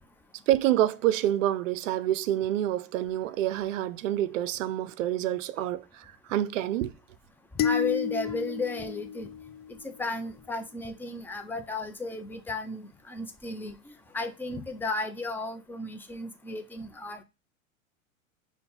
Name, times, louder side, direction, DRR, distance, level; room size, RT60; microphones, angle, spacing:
voice 1, 0.5-6.9, right 13 dB, 65° right, 0.6 m, -27 dB
voice 2, 7.5-9.3 9.8-17.2, left 2 dB, 5° left, 0.5 m, -34 dB
sound 1, 7.6-10.0, left 8 dB, 60° left, 0.6 m, -31 dB
5.3 x 2.3 x 4.3 m
hypercardioid pair, 95°, 42 cm